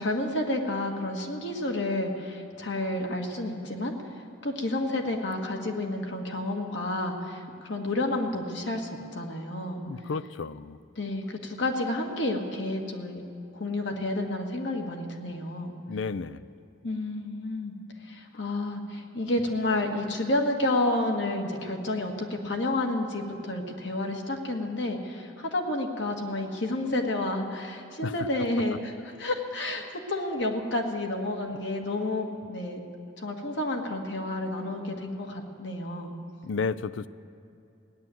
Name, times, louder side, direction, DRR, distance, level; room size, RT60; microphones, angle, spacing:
voice 1, 0.0-3.9 4.4-9.8 11.0-13.2 13.5-15.7 16.8-17.7 18.0-28.9 29.2-32.8 33.2-36.2, left 1 dB, 70° left, 2 dB, 1.7 m, -30 dB
voice 2, 9.9-10.8 15.9-16.5 28.0-28.3 28.7-28.8 36.4-37.1, left 4 dB, 90° left, 16 dB, 0.5 m, -32 dB
17.0 x 10.5 x 7.7 m, 2.6 s
head